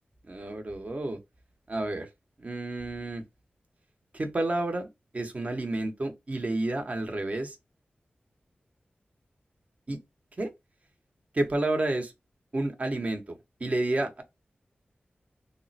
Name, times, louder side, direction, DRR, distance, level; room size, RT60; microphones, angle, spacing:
voice 1, 0.2-1.2 1.7-2.1 2.4-3.2 4.1-4.9 5.1-7.6 9.9-10.0 10.4-10.5 11.3-12.1 12.5-14.2, right 2 dB, 40° right, 1.0 m, -30 dB
3.6 x 2.1 x 4.0 m
wide cardioid pair, 85°, 4 cm